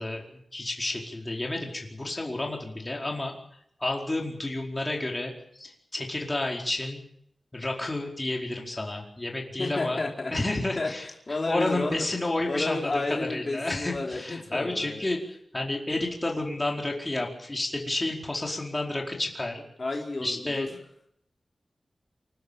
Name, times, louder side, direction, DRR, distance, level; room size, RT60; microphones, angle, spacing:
voice 1, 0.0-3.3 3.8-7.0 7.5-10.0 10.3-13.0 13.3-15.2 15.5-19.6 20.2-20.7, left 2 dB, 25° left, 0 dB, 4.7 m, -31 dB
voice 2, 9.6-10.3 10.8-10.9 11.3-12.0 12.4-15.0 19.8-20.7, left 2 dB, 45° left, 0 dB, 4.0 m, -31 dB
28.0 x 12.5 x 9.1 m, 0.73 s
wide cardioid pair, 95°, 0 cm